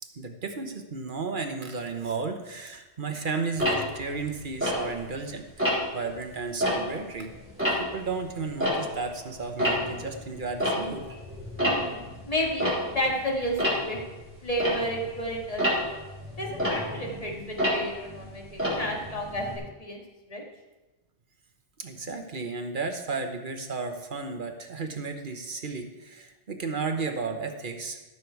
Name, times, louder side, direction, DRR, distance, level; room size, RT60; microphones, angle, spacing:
voice 1, 0.0-7.3 7.8-11.1 21.8-28.0, right 4 dB, 50° right, 5 dB, 1.2 m, -33 dB
Tick-tock, 3.6-5.2 5.6-6.0 6.4-9.2 9.4-19.6, equal, 10° right, 3.6 m, -30 dB
voice 2, 11.6-12.7 12.9-14.0 14.4-15.7 16.4-19.5 19.8-20.0 20.3-20.4, equal, 35° left, -1 dB, 2.0 m, -31 dB
14.0 x 7.0 x 4.6 m, 1.1 s
omnidirectional pair, 1.1 m